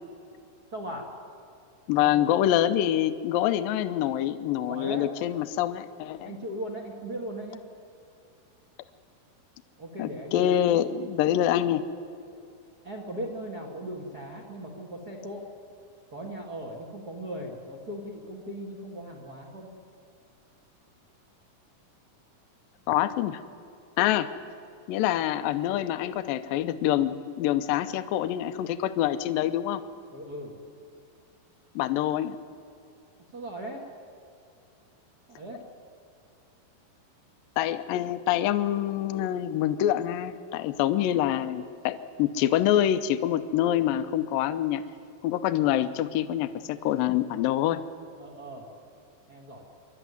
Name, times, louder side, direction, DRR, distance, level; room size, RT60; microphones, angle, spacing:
voice 1, 0.7-1.1 2.0-2.2 4.7-5.1 6.2-7.6 9.8-10.8 12.8-15.4 16.1-19.7 30.1-30.5 33.3-33.8 35.3-35.6 48.2-48.7 49.3-49.6, right 1 dB, 40° right, 1 dB, 1.3 m, -38 dB
voice 2, 1.9-6.3 10.0-11.8 22.9-23.4 24.0-24.3 24.9-29.8 31.8-32.4 37.6-44.8 45.2-47.8, left 11 dB, 75° left, 11 dB, 2.3 m, -26 dB
27.0 x 12.0 x 9.4 m, 2.5 s
omnidirectional pair, 4.7 m